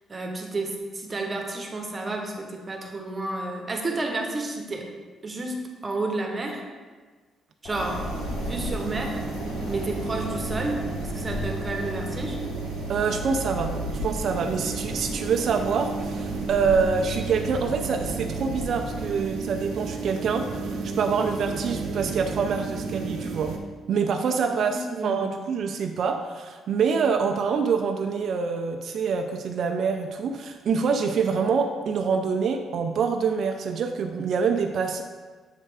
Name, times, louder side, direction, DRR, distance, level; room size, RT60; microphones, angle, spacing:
voice 1, 0.1-4.9 5.2-6.6 7.6-8.0 8.4-9.2 9.7-12.4 24.5-25.2, right 2 dB, 30° right, 2 dB, 1.0 m, -31 dB
Wind, 7.6-19.3, left 3 dB, 60° left, 0.4 m, -38 dB
sound 1, 7.8-23.6, right 3 dB, 85° right, 0.8 m, -32 dB
voice 2, 12.9-13.8 14.0-20.6 20.8-23.6 23.9-35.0, right 5 dB, 65° right, 5 dB, 0.4 m, -26 dB
7.4 x 3.3 x 4.8 m, 1.4 s
cardioid pair, 90°, 0 cm